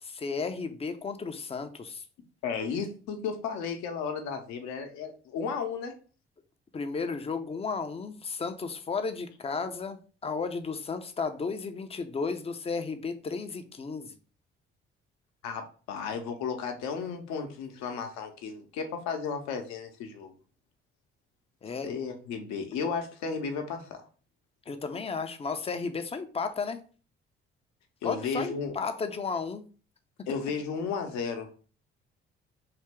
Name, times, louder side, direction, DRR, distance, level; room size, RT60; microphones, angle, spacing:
voice 1, 0.0-2.0 6.7-14.1 21.6-21.9 24.7-26.8 28.0-29.7, left 4 dB, 20° left, 8 dB, 0.5 m, -34 dB
voice 2, 2.4-5.9 15.4-20.3 21.8-24.0 28.0-28.7 30.3-31.5, left 5 dB, 65° left, 5 dB, 0.8 m, -34 dB
3.4 x 2.8 x 3.3 m, 0.38 s
figure-of-eight pair, 45°, 31 cm